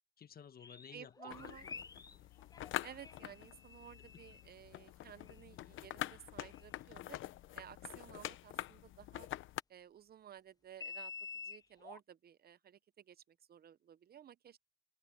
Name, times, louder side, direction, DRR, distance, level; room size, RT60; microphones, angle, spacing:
voice 1, 0.0-2.4 3.8-4.4, left 8 dB, 50° left, 1.5 m, -58 dB
sound 1, 0.6-4.4 5.3-5.4 6.5-6.6 10.7-12.0, left 5 dB, 20° left, 0.4 m, -49 dB
voice 2, 0.9-1.7 2.8-7.2 7.5-9.3 9.7-11.1 11.4-13.2 13.5-14.6, right 9 dB, 50° right, 0.7 m, -55 dB
sound 2, 1.3-9.6, left 14 dB, 80° left, 0.8 m, -46 dB
open air
cardioid pair, 90°, 20 cm